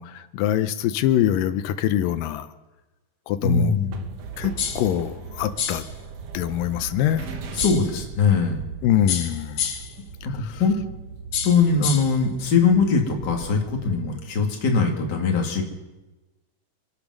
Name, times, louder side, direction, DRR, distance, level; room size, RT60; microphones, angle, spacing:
voice 1, 0.0-2.5 3.3-3.7 4.4-5.8 6.3-7.3 8.8-9.7 10.3-10.6, left 11 dB, 85° left, 11 dB, 2.4 m, -24 dB
voice 2, 3.4-4.1 7.5-8.6 10.3-10.8 11.4-15.6, left 5 dB, 35° left, 1 dB, 2.3 m, -21 dB
sound 1, 3.7-14.1, right 5 dB, 60° right, 1.8 m, -39 dB
sound 2, 4.6-4.9 5.6-5.9 7.6-7.9 9.1-10.0 11.3-12.2, left 7 dB, 55° left, 2.2 m, -28 dB
26.0 x 8.6 x 6.2 m, 1.1 s
omnidirectional pair, 3.8 m